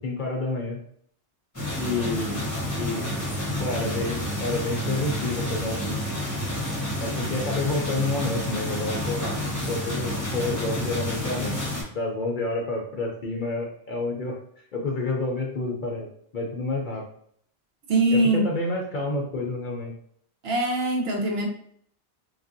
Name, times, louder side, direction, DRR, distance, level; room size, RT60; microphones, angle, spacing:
voice 1, 0.0-0.8 1.8-2.5 2.8-3.0 3.6-6.0 7.0-9.3 9.7-11.6 11.9-14.4 14.7-16.1 16.3-17.0 18.1-19.9, left 2 dB, 55° left, 0 dB, 0.6 m, -29 dB
sound 1, 1.5-11.8, left 1 dB, 15° left, 0.9 m, -29 dB
voice 2, 17.9-18.5 20.4-21.5, right 2 dB, 60° right, 1 dB, 0.9 m, -22 dB
3.2 x 2.5 x 2.5 m, 0.64 s
omnidirectional pair, 1.2 m